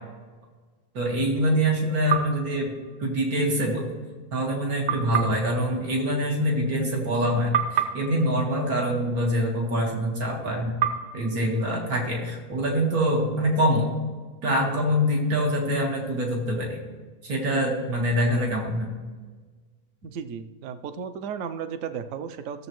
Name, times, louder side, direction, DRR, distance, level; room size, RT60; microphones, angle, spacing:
voice 1, 0.9-2.7 3.0-3.8 4.3-10.8 11.1-13.9 14.4-16.8 17.2-18.9, equal, 90° right, -1 dB, 2.1 m, -25 dB
sound 1, 2.1-3.5 4.9-7.2 7.5-9.8 10.8-12.7, right 8 dB, 45° right, 0.6 m, -32 dB
voice 2, 20.0-22.7, right 7 dB, 70° right, 10 dB, 0.9 m, -34 dB
16.0 x 7.1 x 3.1 m, 1.4 s
omnidirectional pair, 1.5 m